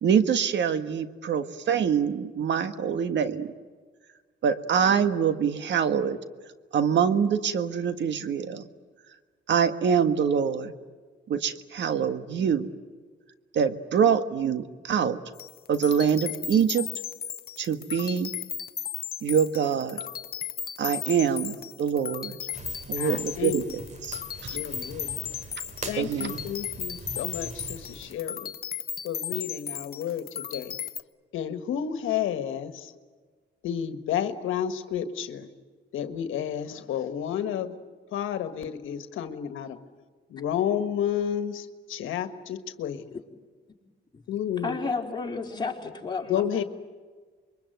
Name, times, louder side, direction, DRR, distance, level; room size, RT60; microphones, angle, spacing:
voice 1, 0.0-3.5 4.4-6.2 6.7-8.6 9.5-10.7 11.3-12.7 13.5-15.2 15.7-16.9 17.6-18.3 19.2-20.0 20.8-22.4 22.9-23.6 24.0-24.6 26.0-26.4, right 7 dB, 65° right, 10 dB, 1.6 m, -25 dB
sound 1, 15.4-31.0, left 8 dB, 50° left, 0.8 m, -36 dB
sound 2, 22.5-28.2, right 2 dB, 35° right, 2.8 m, -42 dB
voice 2, 22.9-23.7 24.5-25.3 25.9-28.5 29.0-30.8 31.3-32.9 33.6-35.5 35.9-37.8 38.1-39.8 40.3-43.1 44.3-44.8 46.3-46.6, left 9 dB, 80° left, 10 dB, 1.5 m, -31 dB
voice 3, 44.6-46.6, left 4 dB, 20° left, 0 dB, 4.4 m, -32 dB
27.0 x 23.0 x 9.2 m, 1.5 s
cardioid pair, 90°, 20 cm